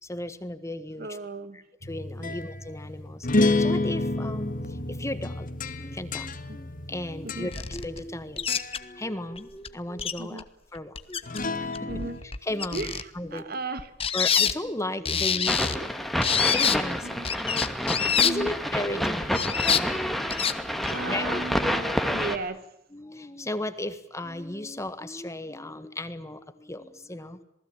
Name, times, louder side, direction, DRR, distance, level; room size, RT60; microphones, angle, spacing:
voice 1, 0.0-1.2 1.5-5.5 5.8-8.5 8.8-10.4 10.7-13.6 14.1-17.2 17.5-17.8 18.1-20.3 20.9-21.4 22.9-27.4, left 1 dB, 15° left, 12 dB, 1.6 m, -36 dB
voice 2, 1.0-1.6 2.2-2.4 6.5-6.6 7.2-7.5 10.2-10.4 11.9-12.2 12.7-12.9 13.3-13.9 15.6-15.9 17.0-17.3 18.2-18.5 20.9-22.6, right 3 dB, 55° right, 12 dB, 1.8 m, -35 dB
sound 1, 1.8-8.2 8.5-8.9 11.2-12.2, left 2 dB, 50° left, 1.8 m, -29 dB
sound 2, 7.5-8.0 8.4-8.8 9.4-9.5 9.6-9.7 10.0-10.4 10.7-11.4 11.7-13.0 13.8-14.5 15.0-15.8 16.2-16.8 17.2-18.3 19.2-19.8 20.3-20.5 20.8-21.0, left 7 dB, 30° left, 1.3 m, -26 dB
sound 3, 15.5-22.4, equal, ahead, 2.1 m, -28 dB
27.5 x 19.5 x 8.8 m, 0.81 s
head